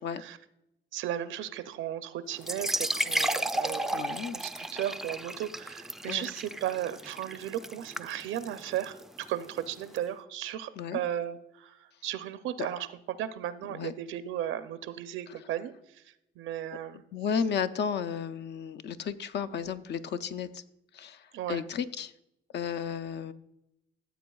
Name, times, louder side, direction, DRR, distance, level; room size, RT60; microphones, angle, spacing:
voice 1, 0.9-4.0 4.3-16.0 16.4-17.0 21.3-21.6, right 11 dB, 85° right, 11 dB, 0.5 m, -35 dB
sound 1, 2.4-10.0, right 1 dB, ahead, 0.3 m, -34 dB
voice 2, 3.9-4.4 6.1-6.3 10.8-11.0 13.7-13.9 17.1-20.6 20.9-22.1 22.5-23.3, left 7 dB, 60° left, 12 dB, 0.5 m, -33 dB
14.0 x 7.8 x 2.3 m, 0.85 s
cardioid pair, 90°, 20 cm